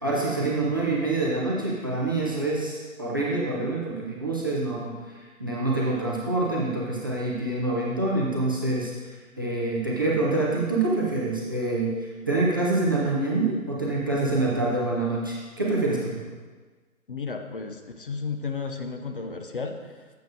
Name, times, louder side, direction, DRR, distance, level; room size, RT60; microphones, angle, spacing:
voice 1, 0.0-8.9 9.4-16.2, right 2 dB, 15° right, -5 dB, 0.5 m, -26 dB
voice 2, 17.1-20.1, left 4 dB, 40° left, 5 dB, 0.6 m, -33 dB
10.5 x 7.8 x 2.5 m, 1.4 s
figure-of-eight pair, 140°, 44 cm